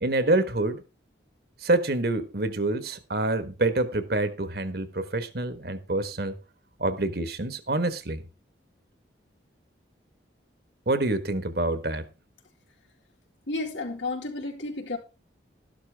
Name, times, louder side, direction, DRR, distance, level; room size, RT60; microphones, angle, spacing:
voice 1, 0.0-0.8 1.6-6.3 6.8-8.2 10.9-12.1, right 2 dB, 55° right, 1.4 m, -26 dB
voice 2, 13.5-15.0, left 2 dB, 80° left, 3.7 m, -32 dB
13.0 x 12.0 x 3.5 m
head